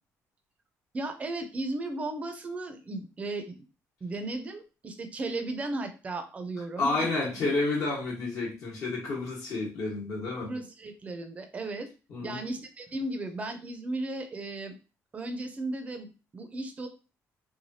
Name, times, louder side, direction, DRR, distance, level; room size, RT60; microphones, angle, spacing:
voice 1, 0.9-3.7 4.0-7.5 10.4-11.9 12.2-14.8 15.1-16.9, right 2 dB, 25° right, 7 dB, 0.4 m, -35 dB
voice 2, 6.8-10.5 12.1-12.4, left 3 dB, 60° left, -4 dB, 1.1 m, -30 dB
3.2 x 2.2 x 2.6 m, 0.32 s
cardioid pair, 155°, 6 cm